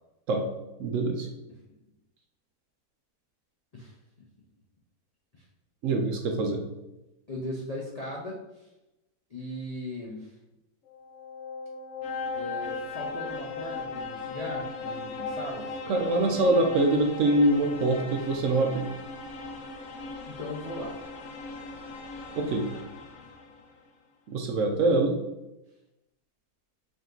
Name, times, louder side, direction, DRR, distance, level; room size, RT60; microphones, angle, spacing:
voice 1, 0.8-1.3 5.8-6.6 15.9-18.9 22.4-22.7 24.3-25.2, right 2 dB, 70° right, 3 dB, 0.8 m, -24 dB
voice 2, 3.7-4.3 5.3-5.4 7.3-8.7 9.3-10.4 12.3-15.8 18.0-18.3 20.3-20.9, left 1 dB, 50° left, -3 dB, 0.4 m, -38 dB
sound 1, 10.9-23.7, left 3 dB, 70° left, 1.0 m, -38 dB
5.0 x 2.6 x 3.8 m, 0.96 s
omnidirectional pair, 1.6 m